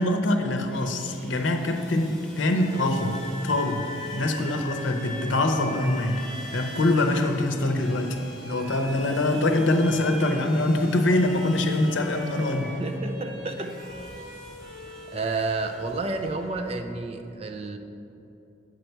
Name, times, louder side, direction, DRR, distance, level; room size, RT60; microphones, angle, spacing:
voice 1, 0.0-6.3 6.5-8.2 8.4-12.8, left 1 dB, 80° left, 5 dB, 0.7 m, -24 dB
Sawing, 0.5-17.0, equal, ahead, 1.2 m, -47 dB
Bowed string instrument, 2.5-15.9, equal, 55° right, 1.5 m, -43 dB
Wind instrument woodwind instrument, 2.6-7.4, left 3 dB, 25° left, 0.4 m, -40 dB
voice 2, 12.8-13.8 15.1-17.8, right 3 dB, 30° right, 6 dB, 0.5 m, -30 dB
8.3 x 5.6 x 4.5 m, 2.8 s
head